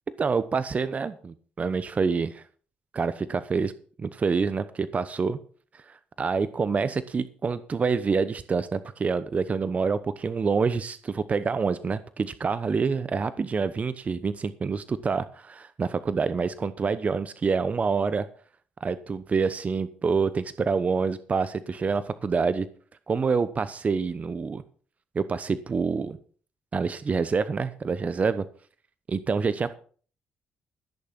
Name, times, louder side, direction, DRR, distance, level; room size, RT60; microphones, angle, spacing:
voice 1, 0.2-2.4 2.9-3.7 4.0-5.4 5.7-18.3 18.8-22.7 23.1-24.6 25.1-26.2 26.7-28.4 29.1-29.8, right 5 dB, 40° right, 14 dB, 0.9 m, -27 dB
16.0 x 6.8 x 5.9 m, 0.43 s
supercardioid pair, 65°, 4 cm